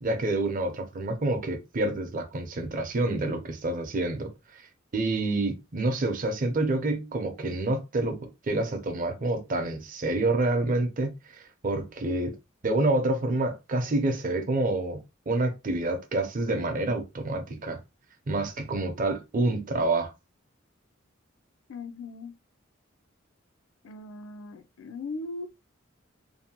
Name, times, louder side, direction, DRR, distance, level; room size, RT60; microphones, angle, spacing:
voice 1, 0.0-4.3 4.9-12.3 12.6-17.8 18.3-20.1, right 2 dB, 40° right, 0.6 m, -28 dB
voice 2, 21.7-22.3 23.8-25.5, left 3 dB, 90° left, 0.4 m, -38 dB
2.7 x 2.1 x 2.8 m
head